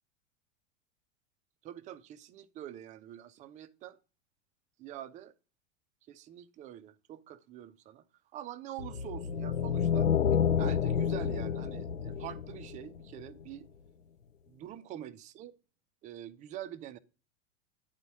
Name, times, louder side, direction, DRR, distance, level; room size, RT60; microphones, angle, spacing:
voice 1, 1.6-4.0 4.8-5.3 6.1-8.0 8.3-10.1 10.6-13.7 14.5-15.5 16.0-17.0, right 12 dB, 20° right, 0.4 m, -45 dB
sound 1, 8.8-13.2, left 7 dB, 90° left, 0.5 m, -29 dB
9.5 x 4.0 x 5.9 m
figure-of-eight pair, 90°, 38 cm